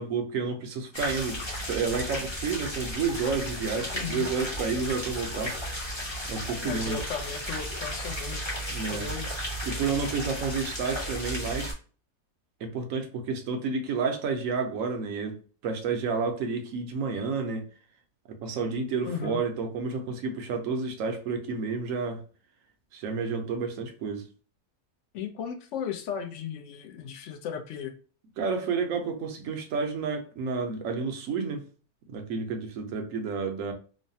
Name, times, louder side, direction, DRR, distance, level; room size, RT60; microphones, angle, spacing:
voice 1, 0.0-5.6 6.2-7.0 8.7-9.1 9.6-11.7 12.6-15.4 15.6-17.7 18.3-22.2 22.9-24.3 28.4-31.6 32.1-33.7, right 5 dB, 65° right, 0.9 m, -30 dB
sound 1, 0.9-11.7, equal, 25° left, 0.7 m, -34 dB
voice 2, 3.9-4.3 6.6-9.3 19.0-19.4 25.1-28.0, left 7 dB, 70° left, 0.7 m, -36 dB
3.1 x 2.1 x 2.6 m
omnidirectional pair, 1.6 m